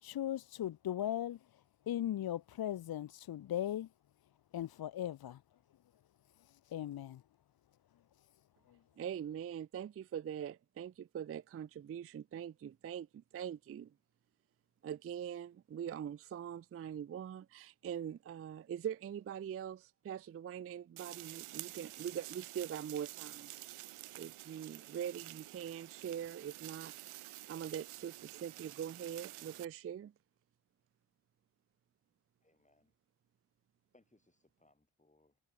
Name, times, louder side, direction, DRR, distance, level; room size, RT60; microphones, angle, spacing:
voice 1, 0.0-1.4 1.9-3.9 4.5-5.4 6.5-7.2, left 11 dB, 50° left, 0.5 m, -38 dB
voice 2, 9.0-13.9 14.8-23.5 24.1-26.9 27.2-30.1, right 9 dB, 30° right, 0.4 m, -43 dB
sound 1, 21.0-29.7, right 16 dB, 80° right, 0.7 m, -50 dB
voice 3, 32.4-32.9 33.9-35.4, left 2 dB, 15° left, 3.0 m, -71 dB
cardioid pair, 55°, 49 cm